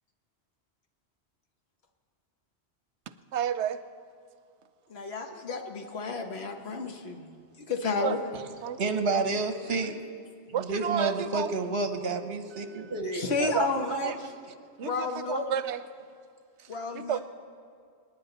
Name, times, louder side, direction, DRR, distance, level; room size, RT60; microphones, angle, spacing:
voice 1, 3.3-3.8 8.0-8.2 8.6-8.8 10.5-11.5 12.7-12.9 13.4-14.4 14.8-15.8 16.6-16.7 16.9-17.2, right 9 dB, 85° right, 12 dB, 0.9 m, -31 dB
voice 2, 4.9-7.3 7.7-8.2 13.1-14.1 14.8-15.4 16.7-17.2, left 4 dB, 70° left, 4 dB, 1.4 m, -31 dB
voice 3, 8.8-9.9 10.6-13.3, right 3 dB, 60° right, 7 dB, 1.2 m, -29 dB
28.0 x 9.6 x 4.0 m, 2.2 s
omnidirectional pair, 1.1 m